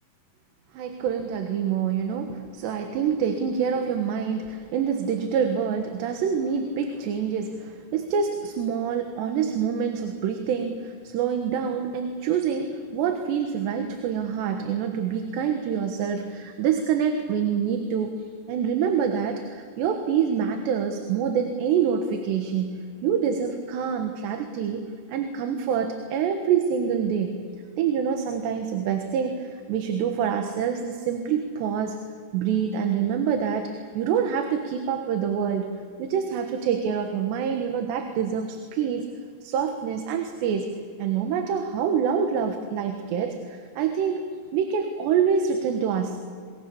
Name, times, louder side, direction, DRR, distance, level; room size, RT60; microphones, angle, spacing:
voice 1, 0.7-24.8 25.1-27.4 27.8-32.0 32.3-35.7 36.0-39.1 39.4-40.7 41.0-44.2 44.5-46.2, right 7 dB, 80° right, 5 dB, 3.6 m, -26 dB
27.5 x 22.5 x 7.1 m, 2.2 s
omnidirectional pair, 5.0 m